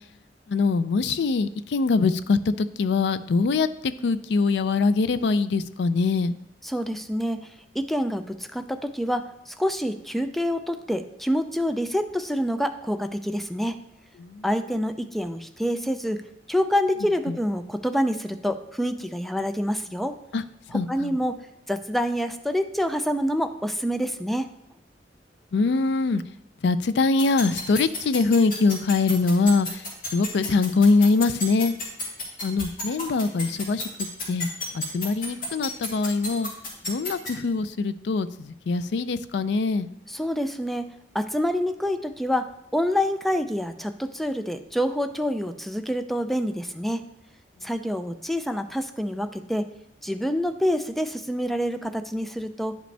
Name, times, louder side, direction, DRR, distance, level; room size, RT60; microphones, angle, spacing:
voice 1, 0.5-6.4 14.2-14.4 20.3-20.4 20.7-21.1 25.5-26.2 26.6-29.8 30.1-31.8 32.4-33.9 34.3-34.5 34.7-36.5 36.9-39.9, left 4 dB, 70° left, 14 dB, 0.4 m, -23 dB
voice 2, 6.6-7.4 7.7-9.3 9.6-13.8 14.4-16.2 16.5-20.2 20.9-21.4 21.7-24.5 40.1-47.0 47.6-49.7 50.0-52.7, equal, ahead, 8 dB, 0.4 m, -27 dB
sound 1, 27.2-37.3, left 3 dB, 55° left, 2.1 m, -31 dB
10.0 x 5.1 x 3.3 m, 0.83 s
head